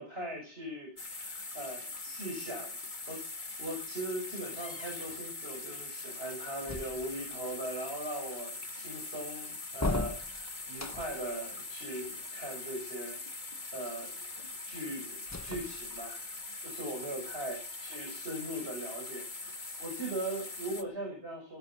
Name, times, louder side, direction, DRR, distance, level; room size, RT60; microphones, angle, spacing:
voice 1, 0.0-2.7 3.1-3.3 3.6-13.4 13.7-14.1 14.6-16.2 16.6-21.6, right 1 dB, 75° right, 1 dB, 6.9 m, -40 dB
sound 1, 1.0-20.8, left 3 dB, 45° left, 2.0 m, -42 dB
sound 2, 6.7-7.4 9.7-11.3 15.2-16.2, left 2 dB, 15° left, 0.8 m, -37 dB
20.0 x 11.5 x 5.9 m, 0.41 s
omnidirectional pair, 1.1 m